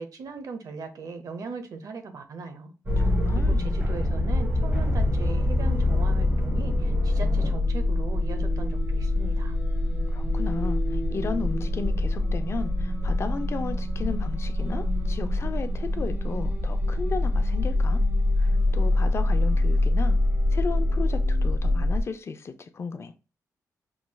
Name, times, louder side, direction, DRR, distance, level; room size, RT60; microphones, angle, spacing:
voice 1, 0.0-2.7 3.0-9.6, right 4 dB, 75° right, 0.8 m, -39 dB
sound 1, 2.9-22.0, left 1 dB, 30° right, 1.1 m, -24 dB
voice 2, 3.0-3.7 10.1-18.0 18.4-20.2 20.5-23.1, left 5 dB, 45° left, 0.5 m, -34 dB
5.7 x 3.1 x 2.3 m
wide cardioid pair, 110°, 6 cm